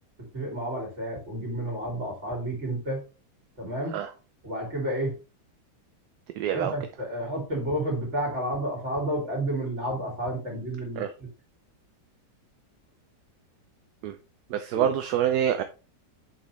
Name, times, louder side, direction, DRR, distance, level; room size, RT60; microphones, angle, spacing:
voice 1, 0.3-3.0 3.6-4.0 4.4-5.2 6.5-11.3 14.7-14.9, right 1 dB, 40° right, 3.3 m, -31 dB
voice 2, 6.4-6.7 11.0-11.1 14.0-14.2 14.5-15.6, right 10 dB, 70° right, 1.1 m, -26 dB
7.4 x 5.6 x 3.1 m
omnidirectional pair, 1.9 m